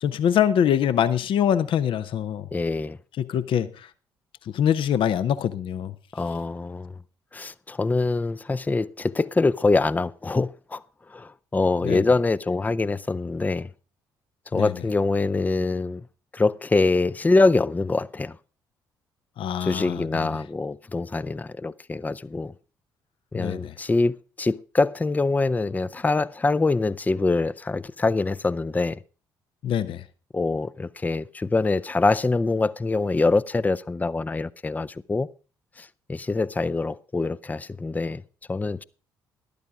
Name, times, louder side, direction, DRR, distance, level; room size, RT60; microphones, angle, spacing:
voice 1, 0.0-2.5 3.2-3.9 4.5-5.9 11.8-12.0 14.5-14.7 19.4-20.3 23.3-23.7 29.6-30.0, left 9 dB, 50° left, 0.7 m, -24 dB
voice 2, 2.5-3.0 6.1-7.0 7.3-10.8 11.1-13.7 14.5-16.0 16.3-18.4 19.6-22.5 23.3-29.0 30.3-35.3 35.8-38.2 38.5-38.8, left 3 dB, 15° left, 0.5 m, -24 dB
13.5 x 12.0 x 3.5 m
figure-of-eight pair, 45°, 11 cm